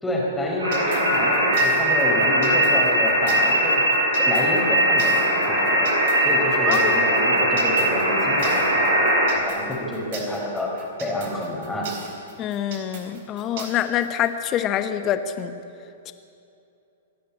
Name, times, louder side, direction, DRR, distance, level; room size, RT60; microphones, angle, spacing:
voice 1, 0.0-3.8 4.1-5.9 6.2-11.9, left 1 dB, 5° left, -3 dB, 4.8 m, -28 dB
sound 1, 0.6-9.3, right 1 dB, 80° right, 6.7 m, -20 dB
sound 2, 0.7-14.3, right 6 dB, 50° right, 4.0 m, -39 dB
voice 2, 12.4-15.5 16.1-16.2, left 10 dB, 30° left, 10 dB, 1.2 m, -25 dB
26.0 x 12.0 x 8.6 m, 2.7 s
figure-of-eight pair, 105°, 0 cm